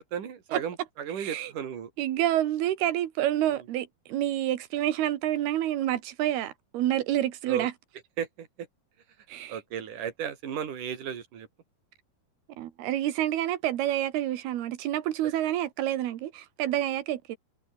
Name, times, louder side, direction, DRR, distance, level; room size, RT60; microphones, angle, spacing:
voice 1, 0.0-1.9 7.5-7.7 8.2-8.5 9.5-11.5, right 8 dB, 60° right, 4.4 m, -34 dB
voice 2, 1.2-1.5 2.0-7.7 9.3-9.6 12.6-17.4, right 12 dB, 90° right, 3.5 m, -28 dB
omnidirectional pair, 4.4 m